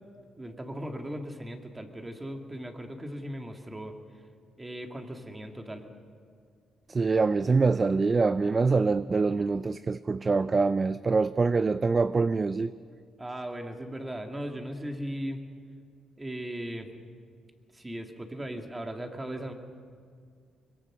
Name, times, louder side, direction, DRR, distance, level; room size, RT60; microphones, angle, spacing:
voice 1, 0.4-3.9 4.6-5.8 13.2-15.4 16.2-16.9 17.7-19.5, right 1 dB, 15° right, 2.4 m, -37 dB
voice 2, 6.9-12.7, right 4 dB, 30° right, 0.4 m, -25 dB
23.5 x 22.5 x 6.2 m
cardioid pair, 90°, 0 cm